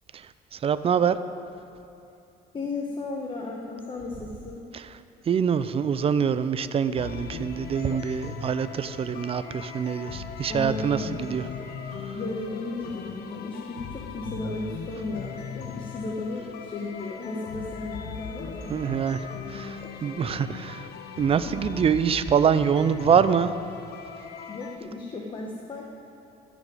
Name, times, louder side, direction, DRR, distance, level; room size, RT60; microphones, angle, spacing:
voice 1, 0.1-1.2 4.7-4.9 5.2-11.4 12.0-12.2 18.7-20.9 21.2-23.5, right 7 dB, 35° right, 13 dB, 0.5 m, -25 dB
voice 2, 2.5-4.7 10.5-11.3 12.1-18.8 19.2-19.3 19.8-20.1 21.4-21.5 24.5-25.8, left 3 dB, 30° left, 0 dB, 1.2 m, -35 dB
sound 1, 7.0-24.8, left 5 dB, 70° left, 0.9 m, -39 dB
14.0 x 5.2 x 9.0 m, 2.7 s
cardioid pair, 110°, 17 cm